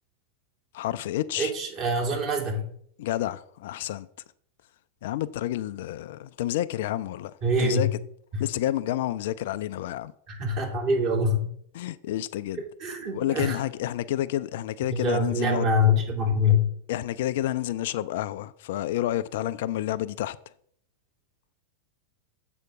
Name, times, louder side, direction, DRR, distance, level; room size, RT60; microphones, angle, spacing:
voice 1, 0.7-1.5 3.0-4.1 5.0-7.9 8.4-10.1 11.7-12.6 13.1-15.7 16.9-20.4, left 13 dB, 55° left, 0.4 m, -29 dB
voice 2, 1.4-2.7 7.4-7.9 8.3-8.4 10.3-11.5 12.8-13.6 14.9-16.7, left 2 dB, 40° right, 2.6 m, -24 dB
7.8 x 5.0 x 6.0 m
figure-of-eight pair, 90°, 0 cm